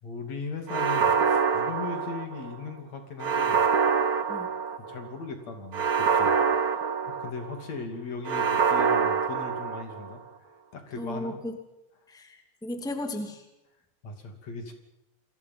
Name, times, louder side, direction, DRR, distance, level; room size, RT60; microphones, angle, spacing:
voice 1, 0.0-3.6 4.9-6.3 6.7-10.2 10.7-11.4 14.0-14.7, left 4 dB, 65° left, 5 dB, 4.1 m, -38 dB
sound 1, 0.7-2.5 3.2-5.0 5.7-7.6 8.2-10.1, right 6 dB, 50° right, 1.2 m, -25 dB
voice 2, 11.0-11.6 12.1-13.4, left 1 dB, ahead, 4 dB, 2.4 m, -35 dB
29.0 x 22.5 x 5.6 m, 0.92 s
omnidirectional pair, 3.4 m